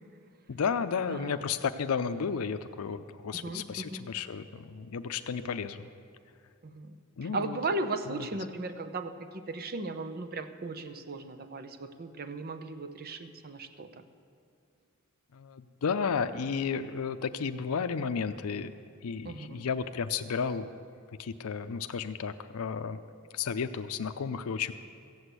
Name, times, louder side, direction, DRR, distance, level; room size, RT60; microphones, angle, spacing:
voice 1, 0.5-5.9 7.2-7.6 8.1-8.3 15.3-18.7 19.0-20.8 21.2-23.0 23.3-24.7, left 6 dB, 85° left, 10 dB, 0.5 m, -33 dB
voice 2, 1.1-1.4 3.3-3.6 3.9-4.0 6.6-7.0 7.2-14.0 19.2-19.7, right 3 dB, 45° right, 9 dB, 0.8 m, -36 dB
15.5 x 7.9 x 8.2 m, 2.4 s
head